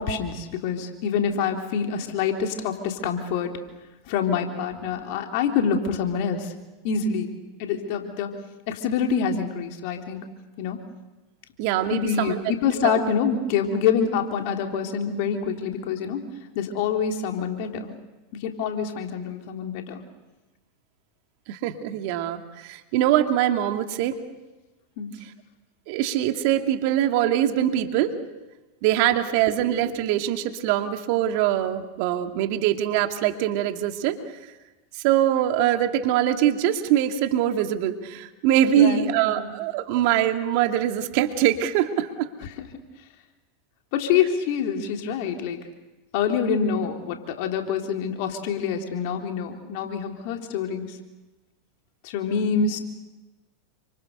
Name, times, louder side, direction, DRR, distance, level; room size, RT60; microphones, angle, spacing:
voice 1, 0.0-3.5 4.1-6.5 6.8-7.3 7.6-8.3 8.7-10.3 10.6-10.8 11.9-16.3 16.6-17.9 18.4-20.0 25.0-25.1 38.7-39.5 42.6-42.7 43.9-45.6 46.1-51.0 52.0-52.8, left 6 dB, 60° left, 3 dB, 3.7 m, -26 dB
voice 2, 11.6-12.4 12.8-13.0 21.5-24.2 25.9-28.1 28.8-34.2 35.0-42.3, right 11 dB, 55° right, 6 dB, 2.5 m, -23 dB
29.0 x 26.0 x 6.7 m, 1.1 s
hypercardioid pair, 90°, 0 cm